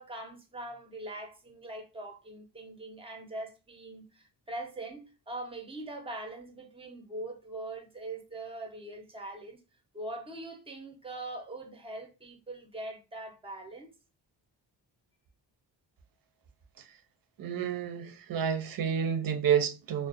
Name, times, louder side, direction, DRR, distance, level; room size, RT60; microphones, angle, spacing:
voice 1, 0.0-9.6 9.9-13.9, right 2 dB, 15° right, 0.7 m, -42 dB
voice 2, 17.4-20.1, right 8 dB, 50° right, 0.5 m, -29 dB
2.4 x 2.1 x 2.5 m
cardioid pair, 90°, 44 cm